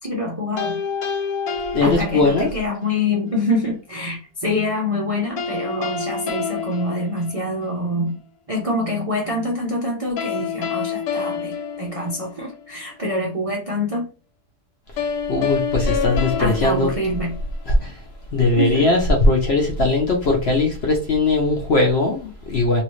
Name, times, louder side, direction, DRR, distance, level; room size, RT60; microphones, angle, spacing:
voice 1, 0.0-0.8 1.8-8.2 8.5-14.1 16.4-17.4 18.6-18.9, left 1 dB, 60° right, -1 dB, 0.3 m, -25 dB
sound 1, 0.6-2.7 5.4-7.8 10.2-12.7 15.0-17.8, left 6 dB, 70° left, 1.1 m, -28 dB
voice 2, 1.7-2.5 15.3-16.9 17.7-18.0 18.3-22.8, left 2 dB, 55° left, 1 dB, 0.8 m, -19 dB
3.0 x 2.7 x 3.0 m, 0.33 s
omnidirectional pair, 1.8 m